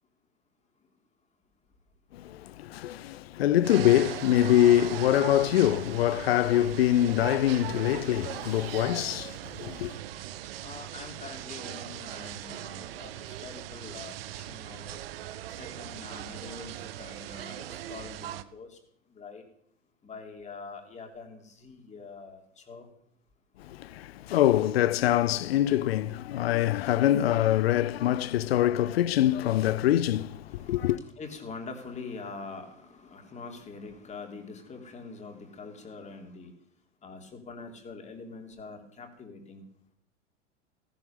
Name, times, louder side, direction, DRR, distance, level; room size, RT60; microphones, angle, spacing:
voice 1, 2.1-10.0 23.6-31.0, left 12 dB, 55° left, 0.8 m, -24 dB
sound 1, 3.6-18.4, right 12 dB, 50° right, 1.2 m, -39 dB
voice 2, 10.6-15.0 15.6-18.8 19.1-19.4 20.0-22.9 30.4-36.5 37.0-39.6, left 4 dB, 20° left, 3.4 m, -44 dB
17.5 x 11.5 x 7.0 m
figure-of-eight pair, 95°, 36 cm